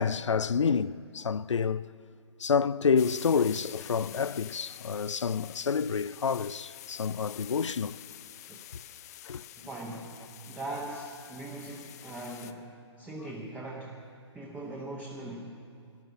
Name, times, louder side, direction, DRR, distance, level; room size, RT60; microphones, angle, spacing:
voice 1, 0.0-1.8 2.4-8.0 9.3-9.4, left 6 dB, 85° left, 0.4 m, -28 dB
sound 1, 3.0-12.5, left 12 dB, 35° left, 0.5 m, -47 dB
voice 2, 9.6-14.0 14.3-15.6, right 2 dB, 10° right, 1.0 m, -40 dB
13.0 x 11.5 x 6.9 m
figure-of-eight pair, 135°, 15 cm